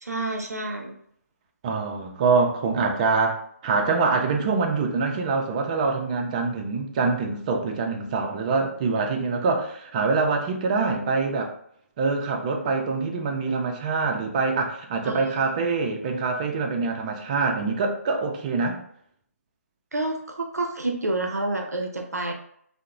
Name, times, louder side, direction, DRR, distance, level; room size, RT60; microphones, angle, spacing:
voice 1, 0.0-1.0 15.0-15.7 19.9-22.3, right 2 dB, 85° right, 3 dB, 0.5 m, -29 dB
voice 2, 1.6-11.5 12.0-18.8, right 4 dB, 30° right, 3 dB, 0.4 m, -25 dB
2.8 x 2.0 x 2.4 m, 0.66 s
figure-of-eight pair, 140°, 8 cm